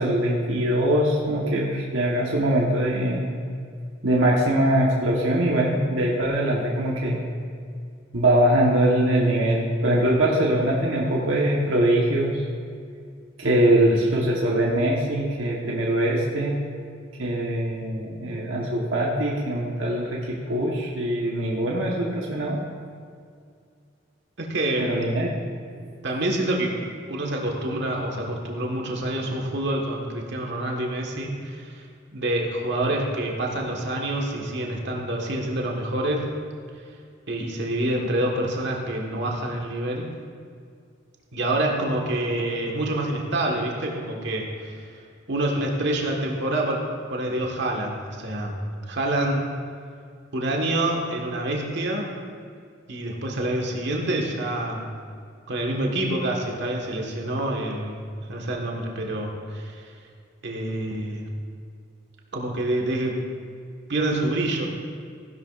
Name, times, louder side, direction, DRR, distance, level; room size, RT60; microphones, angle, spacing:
voice 1, 0.0-3.3 4.0-7.2 8.1-12.4 13.4-16.6 17.2-22.6 24.8-25.3 25.7-25.9, right 1 dB, 80° right, -3 dB, 1.2 m, -22 dB
voice 2, 24.4-24.9 26.0-26.8 27.1-31.9 32.1-36.3 37.3-40.1 41.3-44.9 45.3-48.6 48.9-49.5 50.3-52.1 52.9-54.8 55.5-58.0 58.3-59.9 60.4-61.3 62.3-63.2 63.9-64.7, right 1 dB, 60° right, 0 dB, 1.5 m, -27 dB
15.5 x 11.0 x 2.5 m, 2.2 s
head